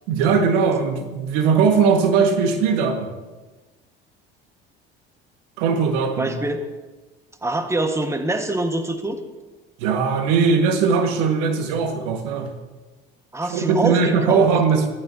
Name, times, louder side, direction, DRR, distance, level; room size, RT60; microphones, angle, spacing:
voice 1, 0.1-3.1 5.6-6.4 9.8-12.5 13.5-14.9, right 5 dB, 65° right, 5 dB, 1.7 m, -19 dB
voice 2, 6.1-6.6 7.4-9.2 13.3-14.5, right 2 dB, 10° right, 7 dB, 1.5 m, -24 dB
23.5 x 14.5 x 2.8 m, 1.2 s
hypercardioid pair, 60°, 29 cm